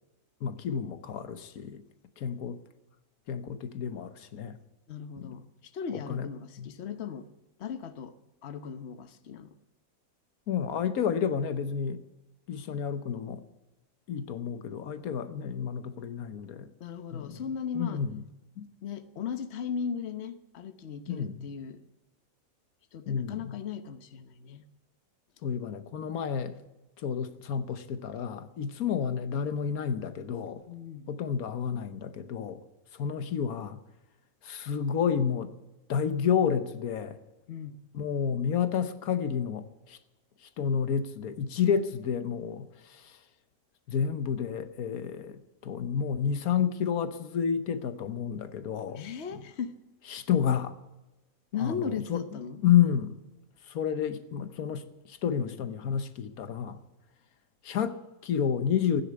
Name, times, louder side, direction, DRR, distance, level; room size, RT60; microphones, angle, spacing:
voice 1, 0.4-1.8 2.2-2.6 3.3-4.6 5.2-5.4 5.9-6.3 6.6-6.7 10.5-12.0 12.5-13.4 14.1-16.7 17.1-17.4 17.7-18.2 18.6-18.7 21.1-21.5 23.1-23.6 25.4-26.6 27.0-30.6 31.1-32.6 32.9-33.8 34.4-35.5 35.9-37.2 37.9-40.0 40.4-43.2 43.9-49.0 49.3-49.4 50.1-50.8 51.6-52.2 52.6-53.2 53.6-56.8 57.6-59.0, left 8 dB, 90° left, 1.4 m, -30 dB
voice 2, 4.9-7.3 7.6-8.2 8.4-9.6 15.1-15.4 16.8-18.0 18.8-21.8 22.9-24.6 30.7-31.1 37.5-37.8 49.0-49.7 51.5-52.6, left 6 dB, 50° left, 1.2 m, -37 dB
15.5 x 10.0 x 8.6 m
omnidirectional pair, 1.5 m